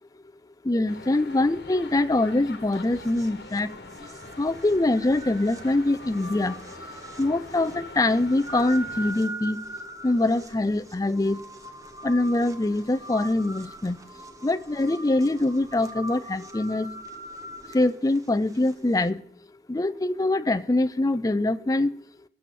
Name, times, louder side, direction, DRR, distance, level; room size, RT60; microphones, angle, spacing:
voice 1, 0.6-3.7 4.4-6.6 7.2-9.6 10.0-11.4 12.0-14.0 14.4-16.9 17.7-19.2 19.7-21.9, left 2 dB, 20° left, 11 dB, 0.4 m, -24 dB
sound 1, 0.9-9.1, left 3 dB, 70° left, 1.4 m, -45 dB
sound 2, 2.7-19.1, right 1 dB, 20° right, 0.9 m, -42 dB
18.5 x 6.9 x 4.1 m, 0.68 s
head